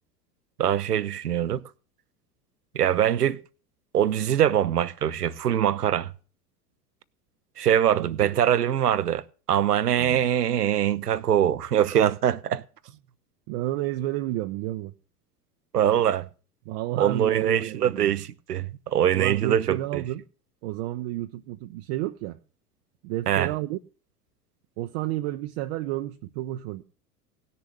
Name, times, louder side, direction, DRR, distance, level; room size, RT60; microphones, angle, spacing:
voice 1, 0.6-1.6 2.7-3.4 3.9-6.1 7.6-12.6 15.7-16.3 17.0-20.0 23.3-23.5, right 10 dB, 75° right, 0.8 m, -23 dB
voice 2, 7.9-8.4 9.9-10.2 11.1-11.2 13.5-14.9 15.8-16.0 16.7-18.2 19.1-20.2 20.6-22.4 23.0-23.8 24.8-26.8, right 15 dB, 40° right, 0.7 m, -31 dB
17.5 x 6.8 x 7.4 m
figure-of-eight pair, 80°, 46 cm